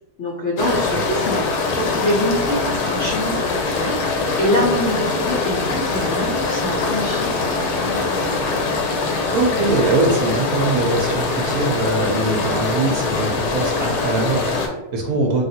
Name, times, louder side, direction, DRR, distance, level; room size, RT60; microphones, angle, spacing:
voice 1, 0.2-8.4, left 1 dB, 65° left, -4 dB, 0.7 m, -25 dB
sound 1, 0.6-14.7, left 3 dB, 85° left, 1.2 m, -23 dB
voice 2, 9.3-15.4, right 2 dB, 70° right, 0 dB, 1.0 m, -22 dB
3.3 x 2.3 x 2.6 m, 1.0 s
omnidirectional pair, 1.8 m